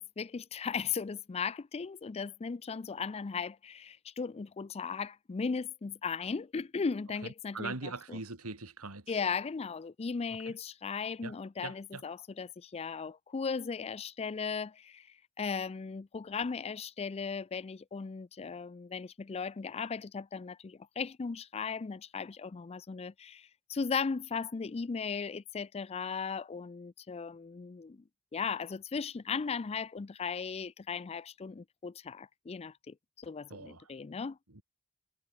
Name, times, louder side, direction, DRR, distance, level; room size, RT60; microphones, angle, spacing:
voice 1, 0.0-8.2 9.1-28.0 28.3-34.4, left 5 dB, 30° left, 0.4 m, -37 dB
voice 2, 7.2-9.2 10.4-10.5 11.2-11.3 11.6-12.0 33.5-33.9 34.5-34.6, right 3 dB, 80° right, 2.8 m, -42 dB
head